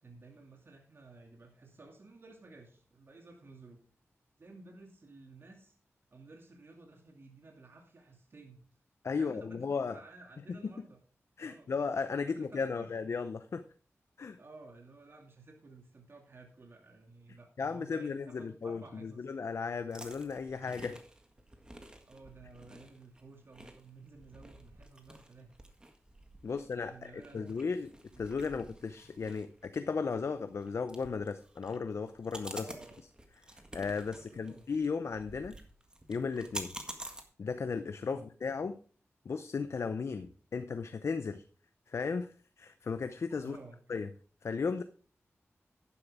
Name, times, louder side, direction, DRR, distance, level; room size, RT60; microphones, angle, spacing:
voice 1, 0.0-3.8 4.4-5.7 6.1-8.6 9.2-11.0 11.4-11.7 12.2-12.9 14.4-19.3 22.1-25.5 26.5-27.6 28.1-28.3 32.6-33.0 34.1-34.7 38.1-38.3 43.4-43.8, right 3 dB, 50° right, 1 dB, 2.4 m, -54 dB
voice 2, 9.0-10.0 10.5-10.6 11.4-13.6 14.2-14.4 17.6-21.0 26.4-27.9 28.2-32.7 33.7-35.6 36.1-36.7 37.4-38.8 39.2-41.4 41.9-43.6 43.9-44.1 44.4-44.8, left 5 dB, 65° left, 10 dB, 0.7 m, -35 dB
sound 1, 19.9-37.2, right 1 dB, 15° right, 1.7 m, -50 dB
11.5 x 9.9 x 3.6 m, 0.39 s
wide cardioid pair, 105°, 5 cm